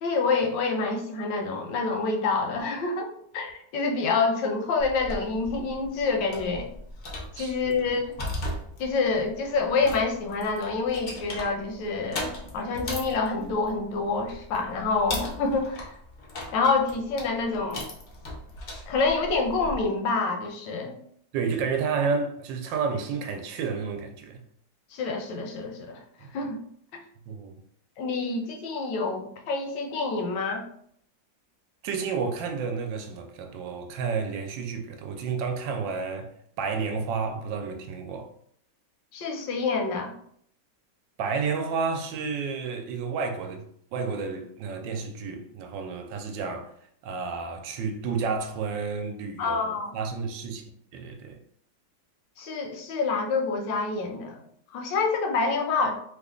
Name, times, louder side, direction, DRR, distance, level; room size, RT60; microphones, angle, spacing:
voice 1, 0.0-6.7 7.3-8.0 8.8-15.9 16.5-17.8 18.9-21.0 24.9-26.0 26.3-26.6 26.9-27.0 28.0-30.6 39.1-40.1 49.4-50.0 52.4-54.4 54.7-55.9, left 4 dB, 85° left, 1.3 m, -27 dB
sound 1, 4.8-19.8, left 1 dB, 65° left, 0.5 m, -38 dB
voice 2, 7.4-7.8 21.3-24.4 26.2-26.5 27.3-27.6 31.8-36.3 36.6-38.3 41.2-46.7 47.0-50.6 50.9-51.4, right 5 dB, 85° right, 1.3 m, -31 dB
3.2 x 2.3 x 3.6 m
omnidirectional pair, 2.0 m